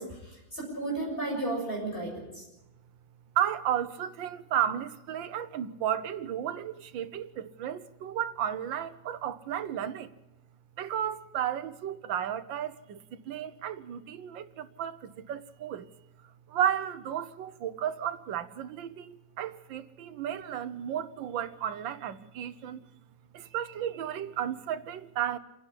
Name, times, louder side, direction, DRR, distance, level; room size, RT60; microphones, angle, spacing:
voice 1, 0.0-2.4, right 2 dB, 30° left, 7.0 m, -34 dB
voice 2, 3.3-10.1 10.8-15.9 16.5-22.8 23.3-25.4, right 10 dB, 85° right, 1.6 m, -33 dB
27.0 x 10.5 x 9.9 m
omnidirectional pair, 2.0 m